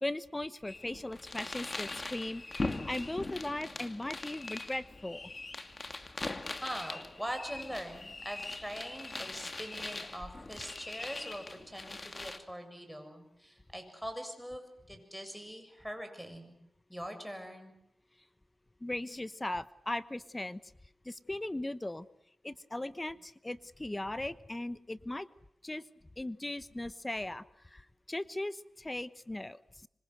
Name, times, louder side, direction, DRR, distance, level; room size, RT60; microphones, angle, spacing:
voice 1, 0.0-5.3 18.8-20.6 21.0-22.1 22.4-25.3 25.6-25.8 26.2-29.9, left 1 dB, 20° left, 15 dB, 1.1 m, -38 dB
sound 1, 0.7-12.4, left 2 dB, 35° left, 2.4 m, -41 dB
voice 2, 6.6-16.5 16.9-17.7, equal, ahead, 7 dB, 7.3 m, -42 dB
25.5 x 25.0 x 8.0 m, 0.76 s
cardioid pair, 55°, 0 cm